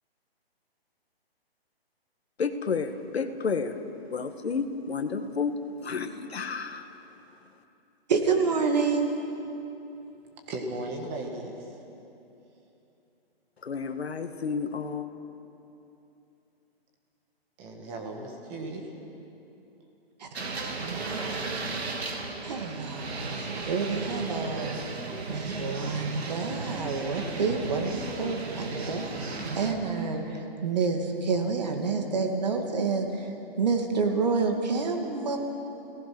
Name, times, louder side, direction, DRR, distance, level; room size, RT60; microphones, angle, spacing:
voice 1, 2.4-3.8 4.1-6.9 13.6-15.1, left 5 dB, 80° left, 7 dB, 1.9 m, -31 dB
voice 2, 8.1-9.1 20.2-20.3 20.8-21.4 22.4-24.8 25.3-33.3 33.6-35.4, right 4 dB, 40° right, 3 dB, 2.5 m, -28 dB
voice 3, 10.5-11.7 17.6-18.9, right 2 dB, 15° right, 2 dB, 1.5 m, -36 dB
sound 1, 20.3-29.7, right 3 dB, 85° right, 3.1 m, -35 dB
30.0 x 19.0 x 6.2 m, 2.9 s
hypercardioid pair, 175°, 31 cm